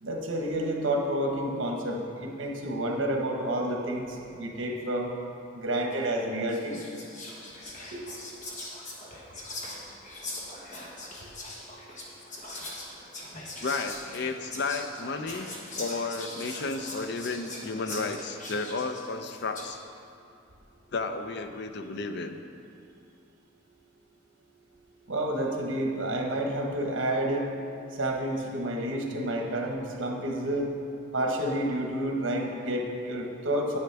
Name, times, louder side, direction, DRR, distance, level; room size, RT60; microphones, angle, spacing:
voice 1, 0.0-5.1 5.5-6.8 7.9-8.0 25.1-27.5 28.0-30.7 31.1-33.8, right 1 dB, 80° right, 1 dB, 1.3 m, -29 dB
Whispering, 5.9-6.1 6.5-19.8, left 2 dB, 40° left, 1.3 m, -41 dB
voice 2, 13.6-19.8 20.9-22.4, left 3 dB, 60° left, 7 dB, 0.5 m, -33 dB
9.2 x 8.9 x 3.4 m, 2.5 s
head